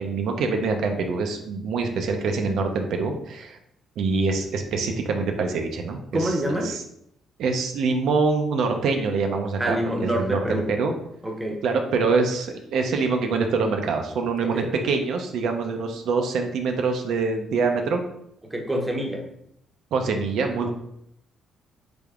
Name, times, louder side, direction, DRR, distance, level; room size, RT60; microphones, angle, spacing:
voice 1, 0.0-3.6 4.0-6.8 7.4-9.8 10.0-10.9 11.6-18.0 19.9-20.7, right 4 dB, 75° right, 4 dB, 0.4 m, -25 dB
voice 2, 6.1-6.7 9.6-10.7 11.2-11.6 14.4-14.7 18.5-19.2, right 1 dB, 15° right, 1 dB, 0.7 m, -26 dB
3.4 x 3.3 x 2.3 m, 0.74 s
cardioid pair, 90°, 0 cm